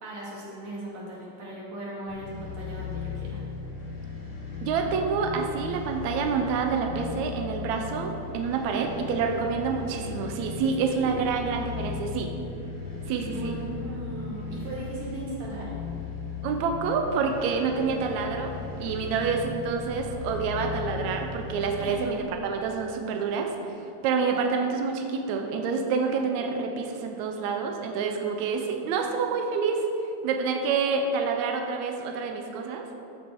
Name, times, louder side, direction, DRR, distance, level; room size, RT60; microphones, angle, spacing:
voice 1, 0.0-3.4 8.7-9.3 10.8-11.1 13.2-15.7 21.8-22.1, right 2 dB, 50° right, -6 dB, 3.4 m, -38 dB
sound 1, 2.1-22.0, left 5 dB, 25° left, 2.7 m, -37 dB
voice 2, 4.6-12.3 13.1-13.5 16.4-18.5 18.8-23.5 24.0-29.8 30.2-32.8, right 5 dB, 90° right, 3 dB, 1.6 m, -28 dB
13.0 x 8.0 x 4.7 m, 2.9 s
omnidirectional pair, 4.3 m